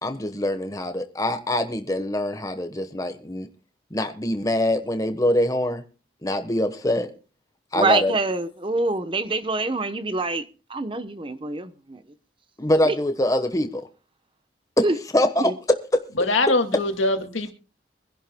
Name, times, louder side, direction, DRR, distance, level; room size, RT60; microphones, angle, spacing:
voice 1, 0.0-3.5 3.9-5.8 6.2-7.1 7.7-8.1 12.6-13.8 14.8-14.9 15.1-15.5 15.9-16.0, left 1 dB, 15° left, 7 dB, 1.1 m, -23 dB
voice 2, 7.7-12.0 12.8-13.0 14.8-15.0 15.4-15.5, right 2 dB, 25° right, 11 dB, 0.9 m, -25 dB
voice 3, 16.2-17.5, left 2 dB, 85° left, 6 dB, 2.2 m, -22 dB
24.5 x 11.0 x 2.2 m, 0.34 s
head